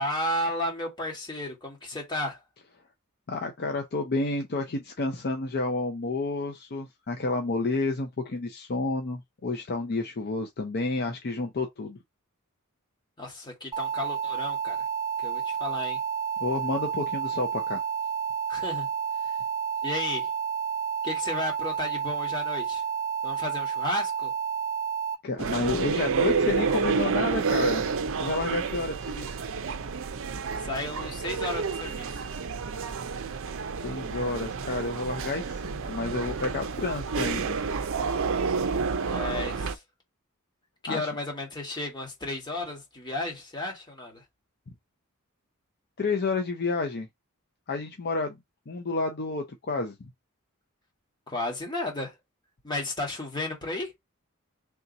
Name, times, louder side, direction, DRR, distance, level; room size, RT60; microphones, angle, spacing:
voice 1, 0.0-2.4 13.2-14.8 15.2-16.0 18.5-18.9 19.2-19.4 19.8-20.3 21.0-22.8 23.2-24.3 30.6-32.2 39.1-39.8 40.8-44.2 51.3-52.2 52.6-53.9, left 1 dB, 20° left, 1.7 m, -33 dB
voice 2, 3.3-12.0 16.4-17.8 25.2-27.8 28.2-29.3 33.8-37.6 40.9-41.1 46.0-47.1 47.7-48.4 48.7-50.1, left 3 dB, 50° left, 0.6 m, -30 dB
sound 1, 13.7-25.1, right 7 dB, 20° right, 0.7 m, -30 dB
sound 2, 25.4-39.7, right 5 dB, 65° right, 0.5 m, -29 dB
3.5 x 2.8 x 3.9 m
head